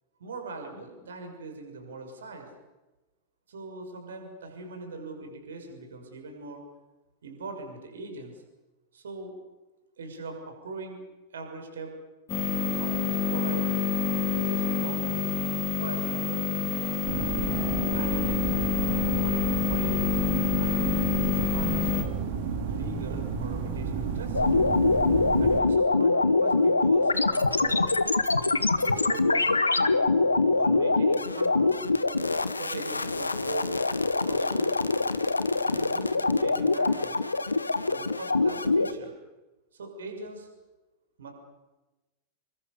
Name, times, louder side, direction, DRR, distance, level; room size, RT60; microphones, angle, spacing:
voice 1, 0.2-2.5 3.5-6.6 7.2-8.4 8.9-9.4 10.0-11.0 11.3-12.0 12.4-13.7 14.3-15.3 15.8-16.5 17.9-20.1 20.6-22.1 22.6-24.6 25.4-27.9 28.7-30.0 30.5-31.8 32.5-33.7 34.2-34.7 35.7-37.2 37.9-39.1 39.7-40.5 41.2-41.3, right 3 dB, 65° right, 4 dB, 6.4 m, -41 dB
sound 1, 12.3-22.0, left 7 dB, 25° left, 5.2 m, -27 dB
sound 2, 17.0-25.6, right 5 dB, 50° right, 4.3 m, -32 dB
sound 3, 24.3-38.9, left 3 dB, 80° left, 1.2 m, -24 dB
28.5 x 23.0 x 6.8 m, 1.1 s
figure-of-eight pair, 90°, 0 cm